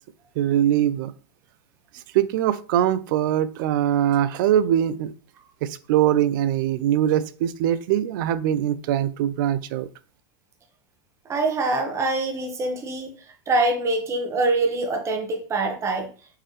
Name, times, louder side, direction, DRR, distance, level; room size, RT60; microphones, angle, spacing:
voice 1, 0.4-1.1 2.1-5.1 5.6-9.9, right 11 dB, 65° right, 0.5 m, -22 dB
voice 2, 11.3-13.2 13.5-16.1, right 2 dB, 25° right, 1.1 m, -24 dB
4.5 x 3.7 x 3.2 m
supercardioid pair, 120°, 12 cm